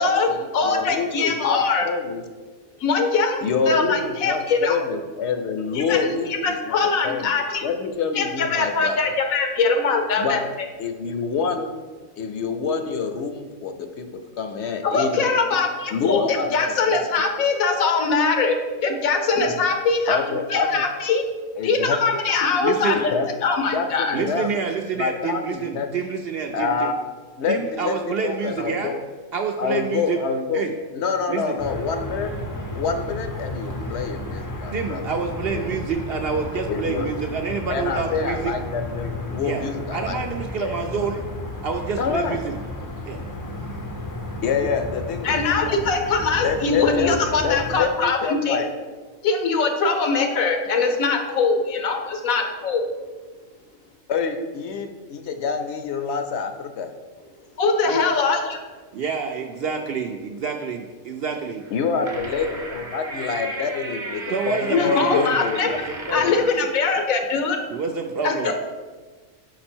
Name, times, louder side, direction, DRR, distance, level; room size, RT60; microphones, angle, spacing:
voice 1, 0.0-2.2 3.4-6.8 7.0-7.3 7.6-9.1 10.1-10.4 10.8-11.8 12.2-15.2 15.9-16.6 16.9-17.0 20.1-20.8 21.6-22.0 22.9-23.3 23.7-24.5 24.9-25.9 26.5-26.9 27.4-29.0 29.6-30.6 30.9-35.0 35.5-35.7 36.7-37.1 37.7-40.2 40.6-40.7 42.0-42.4 44.4-45.8 46.4-48.7 54.1-56.9 61.7-65.8 66.0-66.4, left 5 dB, 65° left, 7 dB, 0.8 m, -27 dB
voice 2, 0.5-1.9 2.8-4.8 5.7-6.0 6.3-7.6 8.1-10.7 14.8-20.2 20.5-21.2 21.6-23.1 23.4-24.2 45.2-48.2 48.4-48.6 49.2-52.8 57.6-58.6 64.7-65.7 66.1-67.6 68.2-68.5, left 4 dB, 90° left, 5 dB, 1.3 m, -22 dB
voice 3, 22.6-23.0 24.1-26.9 27.5-28.9 29.3-30.2 30.5-30.7 31.3-31.6 34.7-38.5 39.4-41.2 41.6-42.6 43.0-43.2 57.8-58.0 58.9-61.6 64.3-65.4 65.8-66.4 67.7-68.5, right 5 dB, 65° right, 3 dB, 0.6 m, -28 dB
sound 1, 31.6-47.8, left 1 dB, 30° left, 0.3 m, -33 dB
sound 2, 61.6-66.5, right 2 dB, 40° right, 1.0 m, -35 dB
6.1 x 5.2 x 4.3 m, 1.3 s
omnidirectional pair, 1.4 m